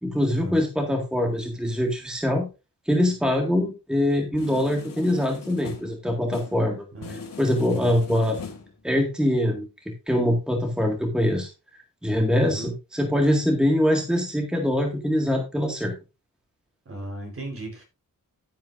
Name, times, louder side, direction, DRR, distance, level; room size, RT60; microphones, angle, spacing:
voice 1, 0.0-2.5 2.9-8.4 8.8-9.7 10.1-15.9, left 1 dB, ahead, 1 dB, 1.9 m, -24 dB
sound 1, 4.3-6.1 6.3-6.7 7.0-8.8, left 5 dB, 85° left, 3.0 m, -40 dB
voice 2, 12.4-12.7 16.9-17.8, right 2 dB, 45° right, 2 dB, 4.2 m, -36 dB
11.5 x 10.0 x 2.6 m, 0.28 s
wide cardioid pair, 175°, 33 cm